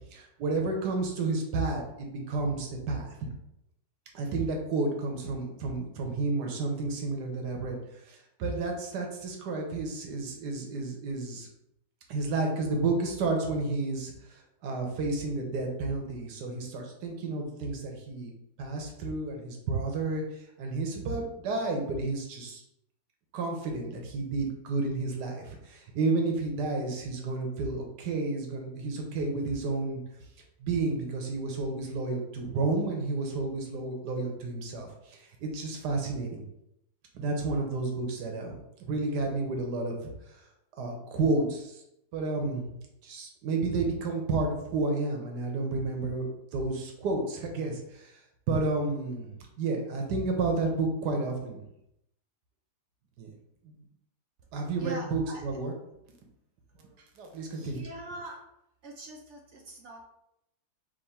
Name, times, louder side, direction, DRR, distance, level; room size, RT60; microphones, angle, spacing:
voice 1, 0.1-3.3 4.1-11.5 12.1-18.3 18.6-22.6 23.3-30.0 30.6-36.4 37.1-40.4 40.7-41.8 42.1-42.7 43.0-48.2 48.5-51.6 53.2-53.3 53.6-53.7 54.5-55.7 56.8-56.9 57.2-57.8, right 3 dB, 85° right, 2 dB, 1.4 m, -31 dB
voice 2, 54.8-55.4 57.4-58.4 58.8-60.0, right 2 dB, 60° right, 1 dB, 0.7 m, -43 dB
3.7 x 3.0 x 4.1 m, 0.81 s
omnidirectional pair, 1.7 m